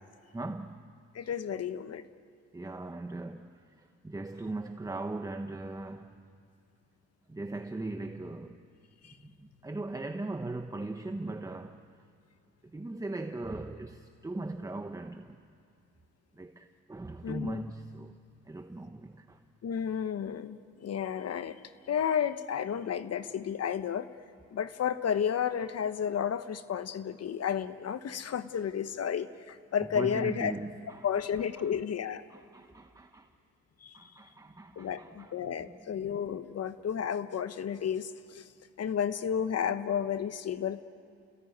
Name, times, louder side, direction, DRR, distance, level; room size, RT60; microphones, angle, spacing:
voice 1, 0.3-0.8 2.5-6.2 7.3-8.6 9.2-11.8 12.6-15.4 16.4-18.2 18.4-19.4 29.9-31.7 32.3-33.3 33.9-35.3 35.6-35.9, right 2 dB, 10° right, 1.1 m, -39 dB
voice 2, 1.1-2.0 9.0-9.1 17.2-17.6 19.6-21.6 21.9-24.1 24.5-30.5 31.0-32.2 33.8-34.1 34.8-38.5 38.8-40.8, left 8 dB, 55° left, 1.1 m, -32 dB
30.0 x 19.5 x 9.3 m
cardioid pair, 90°, 30 cm